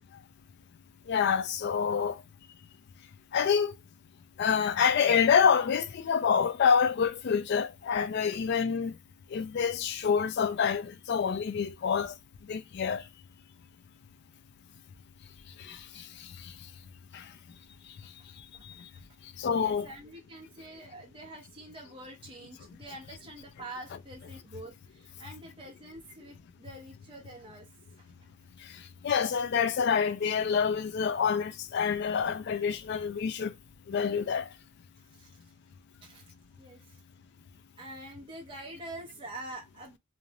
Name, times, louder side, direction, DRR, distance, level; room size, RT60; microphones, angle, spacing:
voice 1, 1.1-2.2 3.3-3.7 4.4-9.0 9.3-12.1 12.5-13.0 15.6-16.5 17.1-17.3 18.4-18.9 19.4-19.9 28.6-33.5 33.9-34.5, left 6 dB, 50° left, 0.3 m, -27 dB
voice 2, 19.5-27.7 35.1-35.3 36.0-37.0 37.8-40.0, right 1 dB, 25° right, 0.7 m, -46 dB
2.4 x 2.1 x 2.8 m
head